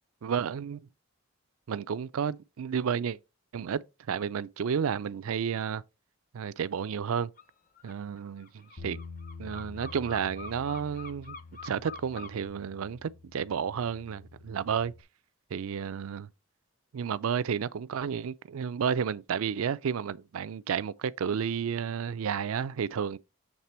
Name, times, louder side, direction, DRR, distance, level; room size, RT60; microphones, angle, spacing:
voice 1, 0.2-0.8 1.7-3.2 3.5-3.8 4.1-5.8 6.3-7.3 7.8-9.0 9.4-11.4 11.6-14.9 15.5-16.3 16.9-23.2, right 7 dB, 70° right, 0.4 m, -31 dB
sound 1, 7.4-7.5 7.8-12.5, left 4 dB, 35° left, 0.5 m, -45 dB
Bass guitar, 8.8-15.0, left 4 dB, 60° left, 1.4 m, -47 dB
7.3 x 3.3 x 4.3 m
head